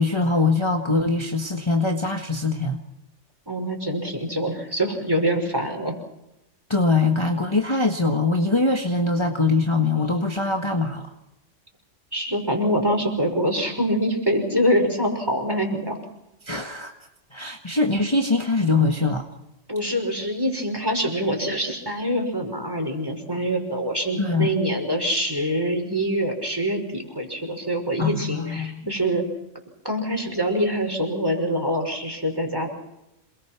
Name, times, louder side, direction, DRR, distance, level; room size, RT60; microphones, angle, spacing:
voice 1, 0.0-2.8 6.7-11.1 16.4-16.9 17.3-19.2 24.2-24.6 28.0-28.9, left 3 dB, 25° left, 3 dB, 1.6 m, -22 dB
voice 2, 3.5-5.9 12.1-16.0 19.7-29.2 29.8-32.7, equal, 20° right, 2 dB, 5.6 m, -25 dB
28.0 x 21.5 x 6.1 m, 0.91 s
omnidirectional pair, 1.3 m